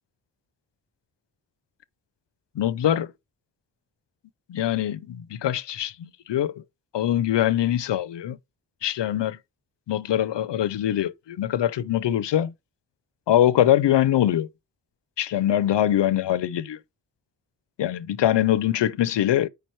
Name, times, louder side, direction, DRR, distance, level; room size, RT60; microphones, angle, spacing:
voice 1, 2.6-3.1 4.5-6.5 6.9-8.4 8.8-9.4 9.9-12.5 13.3-14.5 15.2-16.8 17.8-19.5, left 11 dB, 90° left, 0.5 m, -23 dB
5.0 x 4.6 x 4.3 m
wide cardioid pair, 100°, 41 cm